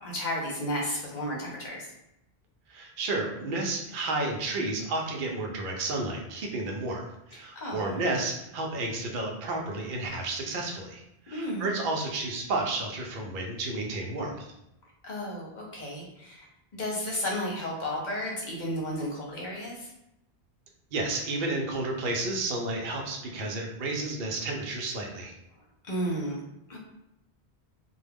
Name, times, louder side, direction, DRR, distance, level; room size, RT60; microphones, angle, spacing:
voice 1, 0.0-1.9 7.3-7.8 11.3-11.7 15.0-16.5 16.7-19.9 25.8-26.4 26.7-26.8, equal, 50° left, -2 dB, 0.7 m, -33 dB
voice 2, 2.7-14.5 20.9-25.3, right 2 dB, 60° right, 0 dB, 0.6 m, -31 dB
2.3 x 2.0 x 3.3 m, 0.84 s
omnidirectional pair, 1.1 m